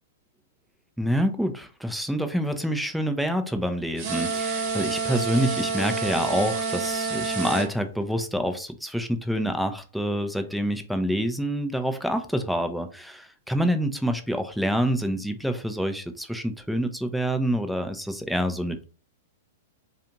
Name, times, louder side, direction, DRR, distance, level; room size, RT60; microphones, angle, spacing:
voice 1, 1.0-18.8, equal, ahead, 7 dB, 0.4 m, -27 dB
sound 1, 4.0-7.7, right 4 dB, 45° right, 0.9 m, -28 dB
2.5 x 2.4 x 2.9 m, 0.37 s
figure-of-eight pair, 105°, 0 cm